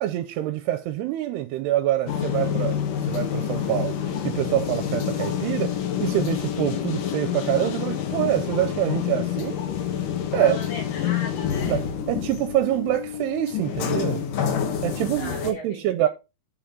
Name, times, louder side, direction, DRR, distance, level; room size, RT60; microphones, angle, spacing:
voice 1, 0.0-9.6 10.3-10.6 11.7-14.3 14.8-16.1, right 13 dB, 85° right, 2.6 m, -26 dB
sound 1, 2.1-15.5, left 9 dB, 65° left, 2.6 m, -27 dB
voice 2, 10.4-11.8 15.2-16.1, left 3 dB, 80° left, 5.0 m, -37 dB
8.9 x 7.8 x 3.8 m
omnidirectional pair, 4.9 m